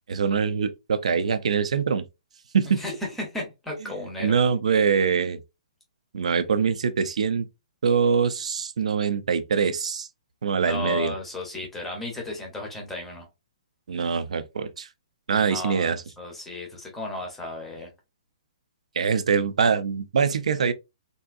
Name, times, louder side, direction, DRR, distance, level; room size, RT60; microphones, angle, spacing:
voice 1, 0.1-2.0 2.5-2.8 4.2-5.4 6.1-7.5 7.8-10.1 10.4-11.1 13.9-14.9 15.3-16.0 19.0-20.7, right 6 dB, 65° right, 0.5 m, -23 dB
voice 2, 3.2-4.3 10.6-13.3 15.5-17.9, left 2 dB, 5° left, 0.7 m, -34 dB
3.5 x 2.6 x 2.4 m
hypercardioid pair, 175°, 4 cm